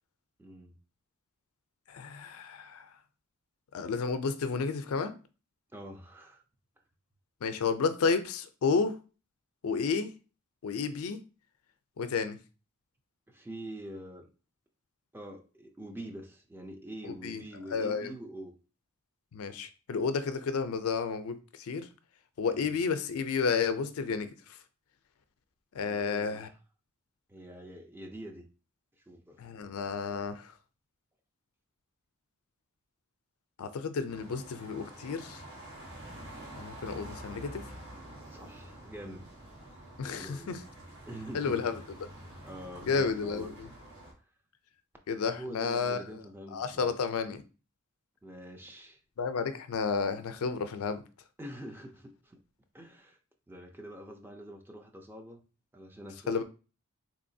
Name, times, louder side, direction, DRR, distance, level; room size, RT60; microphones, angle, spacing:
voice 1, 0.4-0.8 5.7-6.4 13.3-14.3 15.1-18.5 22.5-22.8 25.8-26.5 27.3-28.5 29.1-29.4 38.3-39.3 40.0-40.5 41.1-41.7 42.4-43.6 45.2-46.9 48.2-49.0 51.4-52.4 52.7-53.2 53.5-55.4 55.7-56.3, right 1 dB, 10° right, 0.4 m, -45 dB
voice 2, 1.9-2.9 3.7-5.1 7.4-9.0 9.6-10.1 10.6-11.2 12.0-12.4 17.2-17.4 17.7-18.1 19.3-21.9 22.4-24.3 25.7-26.5 29.4-30.5 33.6-35.4 36.6-37.7 40.0-40.6 41.3-41.7 42.8-43.7 45.1-46.0 46.5-47.4 49.2-51.0 56.3-56.4, left 5 dB, 85° left, 0.4 m, -31 dB
sound 1, 34.1-44.1, right 1 dB, 60° right, 1.4 m, -48 dB
3.7 x 2.9 x 2.6 m
head